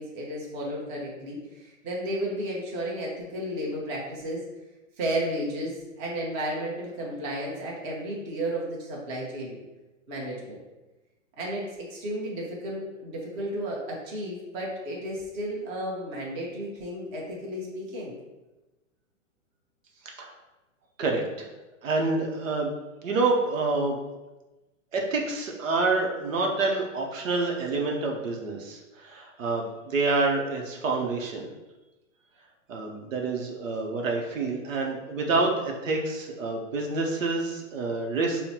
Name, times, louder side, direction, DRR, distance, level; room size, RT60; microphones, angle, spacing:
voice 1, 0.0-4.4 5.0-9.6 10.1-10.6 11.4-18.2, right 1 dB, 25° right, -4 dB, 1.0 m, -33 dB
voice 2, 21.0-21.5 21.8-22.7 23.0-24.0 24.9-31.5 32.7-38.4, right 3 dB, 75° right, 0 dB, 0.8 m, -27 dB
5.5 x 2.1 x 2.9 m, 1.1 s
hypercardioid pair, 135°, 39 cm